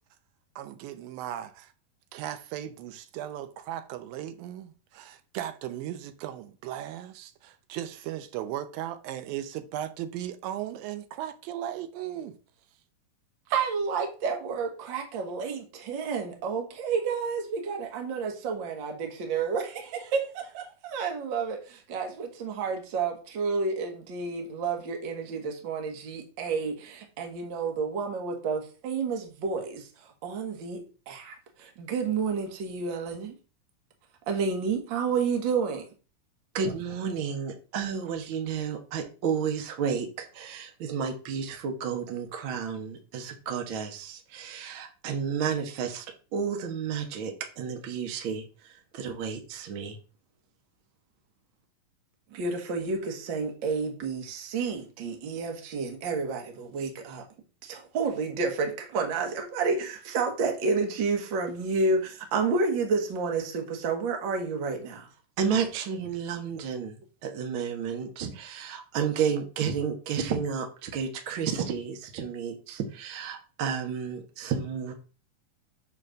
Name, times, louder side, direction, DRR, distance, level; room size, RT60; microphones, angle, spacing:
voice 1, 0.6-1.7 2.1-12.4, right 11 dB, 85° right, 2.5 m, -37 dB
voice 2, 13.5-29.9 30.2-33.3 34.3-35.8 52.3-57.2 57.6-65.1, right 4 dB, 50° right, 1.5 m, -30 dB
voice 3, 36.5-46.1 46.3-50.0 65.4-67.0 67.2-74.9, right 6 dB, 65° right, 1.2 m, -31 dB
6.4 x 4.1 x 6.4 m
omnidirectional pair, 4.1 m